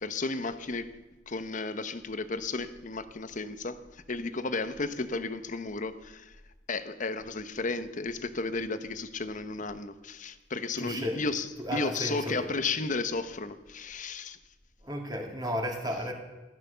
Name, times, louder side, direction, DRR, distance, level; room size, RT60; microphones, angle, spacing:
voice 1, 0.0-1.0 1.3-6.4 6.7-14.4, left 3 dB, 45° left, 11 dB, 1.0 m, -33 dB
voice 2, 10.8-11.3 11.6-12.5 14.8-16.1, equal, 20° right, 1 dB, 2.9 m, -33 dB
16.0 x 12.5 x 6.9 m, 1.1 s
head